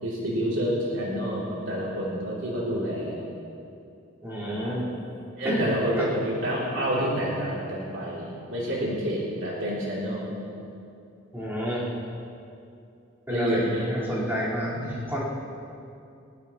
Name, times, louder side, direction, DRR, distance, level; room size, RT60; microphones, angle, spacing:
voice 1, 0.0-3.2 4.4-4.8 5.4-10.3 13.3-13.9 14.7-14.8, equal, 75° right, -6 dB, 3.1 m, -28 dB
voice 2, 4.2-4.9 5.4-5.7 6.0-6.1 11.3-11.9 13.3-15.2, equal, 10° right, -8 dB, 4.2 m, -29 dB
20.5 x 19.0 x 3.0 m, 2.6 s
head